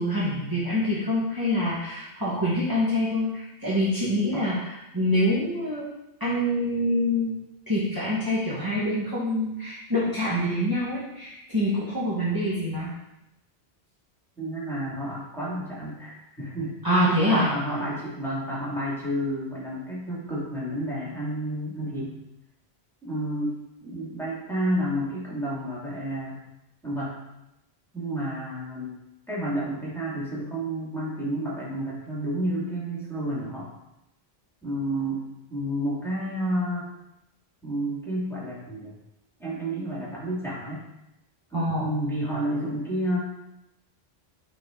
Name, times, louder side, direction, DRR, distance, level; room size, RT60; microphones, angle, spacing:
voice 1, 0.0-5.9 6.2-7.3 7.7-12.9 16.8-17.5 41.5-41.9, left 1 dB, 20° right, -9 dB, 1.5 m, -25 dB
voice 2, 14.4-16.7 17.3-22.2 23.0-26.4 26.8-27.2 27.9-29.0 29.3-33.7 34.6-35.2 35.5-36.9 37.6-38.9 39.4-40.9 41.5-43.2, right 1 dB, ahead, -7 dB, 2.4 m, -30 dB
8.9 x 4.5 x 3.8 m, 0.87 s
omnidirectional pair, 1.1 m